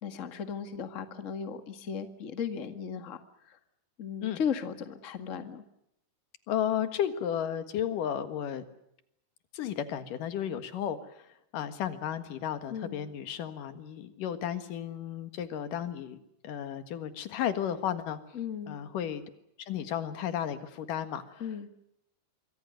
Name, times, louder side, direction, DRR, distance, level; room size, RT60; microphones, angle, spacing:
voice 1, 0.0-3.2 3.5-3.6 4.0-5.6 12.7-13.0 18.3-18.8 21.4-21.7, left 7 dB, 30° left, 9 dB, 1.6 m, -36 dB
voice 2, 6.5-8.6 9.5-16.2 16.4-18.2 18.7-19.2 19.6-21.4, left 9 dB, 90° left, 10 dB, 3.3 m, -33 dB
26.5 x 23.5 x 6.5 m, 0.78 s
omnidirectional pair, 3.7 m